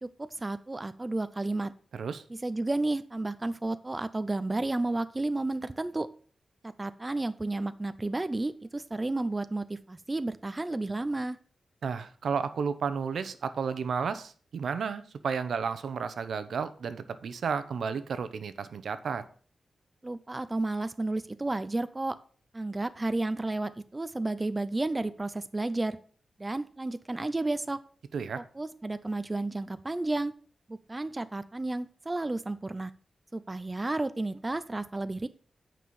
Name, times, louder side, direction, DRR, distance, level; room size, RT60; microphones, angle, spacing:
voice 1, 0.0-1.7 2.3-6.1 6.6-11.4 20.0-22.2 22.5-26.0 26.4-27.8 28.3-30.3 30.7-32.9 33.3-35.3, right 2 dB, 20° right, 13 dB, 0.4 m, -32 dB
voice 2, 1.9-2.2 11.8-19.2 28.1-28.4, right 6 dB, 75° right, 12 dB, 0.8 m, -32 dB
9.2 x 5.6 x 6.9 m, 0.43 s
wide cardioid pair, 150°, 0 cm